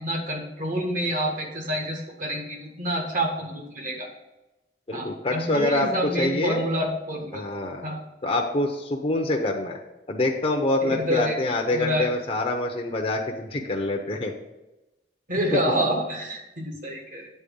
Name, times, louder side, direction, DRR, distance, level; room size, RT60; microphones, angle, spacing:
voice 1, 0.0-4.1 4.9-7.4 7.8-8.0 10.8-12.1 15.3-17.3, equal, 50° right, 1 dB, 1.6 m, -28 dB
voice 2, 4.9-6.6 7.3-7.8 8.2-9.8 10.1-14.3, left 2 dB, 30° left, 1 dB, 0.7 m, -26 dB
8.5 x 4.1 x 5.4 m, 0.98 s
head